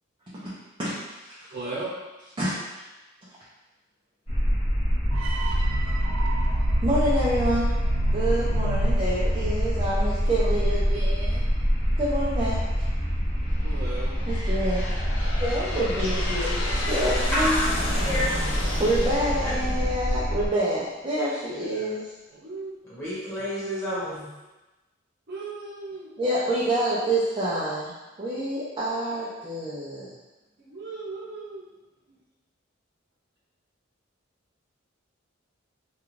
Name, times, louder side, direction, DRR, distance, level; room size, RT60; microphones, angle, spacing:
voice 1, 1.5-1.9 13.6-14.2 15.2-15.4 21.5-22.0 22.3-22.8 23.4-24.1 25.3-26.1 30.6-31.7, right 3 dB, 55° right, -8 dB, 1.0 m, -37 dB
sound 1, 4.3-20.5, equal, 30° left, 0.7 m, -25 dB
sound 2, 5.1-10.2, right 4 dB, 75° right, 0.3 m, -35 dB
voice 2, 6.8-7.7 8.1-11.4 12.0-12.6 14.3-14.8 15.4-17.7 18.8-22.0 26.2-27.9 28.2-30.1, right 1 dB, 25° right, -9 dB, 0.5 m, -27 dB
Aircraft, 11.9-12.5 13.2-20.8, left 1 dB, 60° left, 0.5 m, -34 dB
voice 3, 16.0-16.5 17.3-18.4 19.4-19.5 22.9-24.3, equal, 15° left, -11 dB, 1.3 m, -30 dB
2.4 x 2.3 x 3.1 m, 1.1 s
head